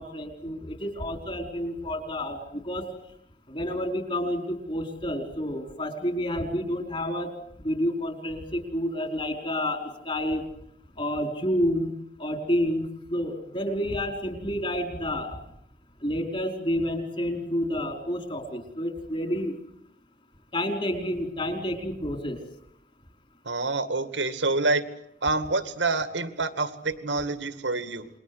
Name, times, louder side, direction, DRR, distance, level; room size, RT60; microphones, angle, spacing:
voice 1, 0.0-2.8 3.5-7.3 7.6-10.4 11.0-11.9 12.2-15.4 16.0-19.6 20.5-22.4, equal, 30° left, 5 dB, 4.9 m, -29 dB
voice 2, 23.5-24.8 25.2-28.1, right 3 dB, 80° right, 11 dB, 2.2 m, -27 dB
28.5 x 22.0 x 8.1 m, 0.73 s
head